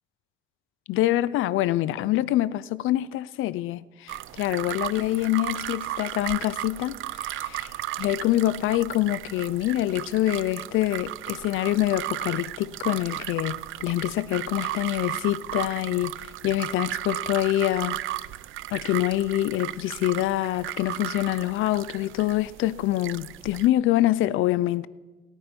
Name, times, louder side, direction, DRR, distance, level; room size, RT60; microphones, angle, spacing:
voice 1, 0.9-7.7 8.0-16.1 16.4-18.0 18.7-24.9, left 15 dB, 90° left, 0.6 m, -25 dB
sound 1, 4.1-23.7, right 15 dB, 85° right, 0.6 m, -35 dB
25.5 x 9.2 x 5.4 m
cardioid pair, 90°, 20 cm